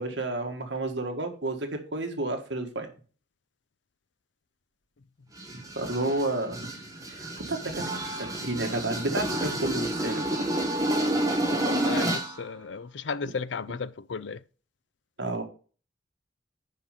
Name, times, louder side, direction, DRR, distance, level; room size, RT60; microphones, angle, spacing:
voice 1, 0.0-2.9 5.5-6.8 7.1-7.9 8.2-10.5 15.2-15.4, right 2 dB, 75° right, 1.7 m, -31 dB
sound 1, 5.4-12.4, right 1 dB, 20° right, 1.5 m, -29 dB
voice 2, 11.6-14.4, left 5 dB, 75° left, 0.5 m, -34 dB
9.7 x 5.4 x 5.1 m
head